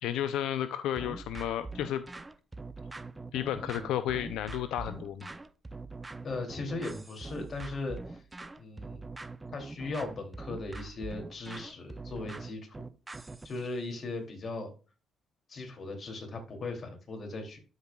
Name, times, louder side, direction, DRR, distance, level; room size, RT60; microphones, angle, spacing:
voice 1, 0.0-2.0 3.3-5.3, left 11 dB, 85° left, 12 dB, 0.5 m, -32 dB
sound 1, 1.0-13.6, right 3 dB, 20° right, 0.6 m, -43 dB
voice 2, 6.2-8.2 8.6-9.1 9.5-12.9 13.4-14.7 15.5-17.6, left 3 dB, 45° left, 3 dB, 2.8 m, -38 dB
12.5 x 5.5 x 2.3 m, 0.35 s
cardioid pair, 90°, 0 cm